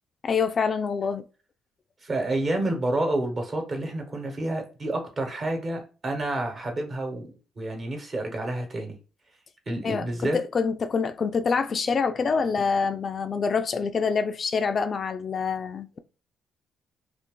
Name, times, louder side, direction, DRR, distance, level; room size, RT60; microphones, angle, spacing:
voice 1, 0.2-1.2 9.8-16.0, left 5 dB, 45° left, 0.3 m, -26 dB
voice 2, 2.0-8.9 9.7-10.4, right 1 dB, 40° right, 1.1 m, -29 dB
2.5 x 2.5 x 3.6 m
cardioid pair, 90°, 0 cm